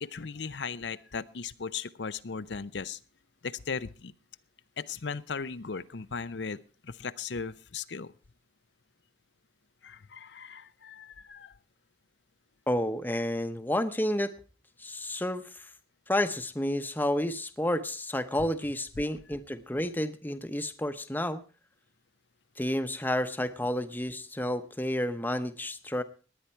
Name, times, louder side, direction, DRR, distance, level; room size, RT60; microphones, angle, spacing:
voice 1, 0.0-3.0 3.4-4.1 4.8-8.1 9.8-11.6, left 5 dB, 90° left, 13 dB, 0.7 m, -37 dB
voice 2, 12.7-14.3 14.8-15.6 16.1-21.4 22.6-26.0, left 1 dB, 10° left, 10 dB, 0.9 m, -30 dB
18.5 x 10.0 x 4.5 m, 0.36 s
head